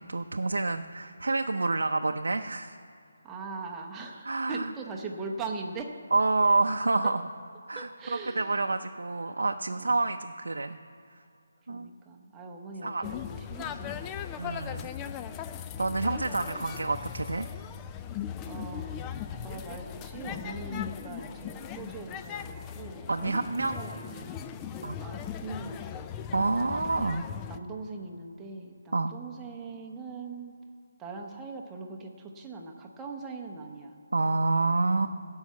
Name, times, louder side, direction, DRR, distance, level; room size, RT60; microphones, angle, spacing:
voice 1, 0.0-2.8 4.3-4.7 6.1-7.2 7.7-10.8 11.7-11.9 12.8-13.0 14.4-14.9 15.8-17.5 23.1-23.8 24.8-25.0 26.3-27.3 28.9-29.1 34.1-35.1, right 3 dB, 85° right, 5 dB, 0.6 m, -28 dB
voice 2, 3.2-6.0 7.0-7.1 7.7-8.6 9.7-10.0 11.7-14.1 16.2-16.4 18.4-19.0 19.3-24.3 24.6-26.1 27.5-30.5 31.0-33.9 34.9-35.1, right 4 dB, 10° right, 0 dB, 0.9 m, -41 dB
sound 1, 13.0-27.6, left 9 dB, 15° left, 0.3 m, -38 dB
16.0 x 5.7 x 7.4 m, 2.5 s
hypercardioid pair, 170°, 0 cm